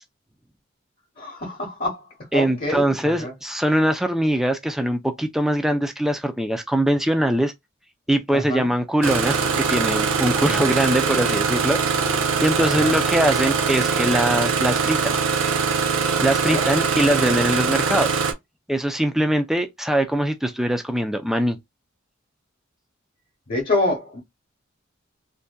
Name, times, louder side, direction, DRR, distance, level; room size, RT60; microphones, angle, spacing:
voice 1, 1.2-2.0 2.3-3.3 8.3-8.7 12.8-12.9 16.4-16.9 17.2-17.4 23.5-24.2, left 2 dB, 45° left, 0.8 m, -27 dB
voice 2, 2.3-7.5 8.1-11.8 12.1-15.2 16.2-18.1 18.7-21.6, right 1 dB, ahead, 0.3 m, -22 dB
Engine starting, 9.0-18.3, right 5 dB, 80° right, 0.5 m, -22 dB
2.6 x 2.2 x 2.2 m
head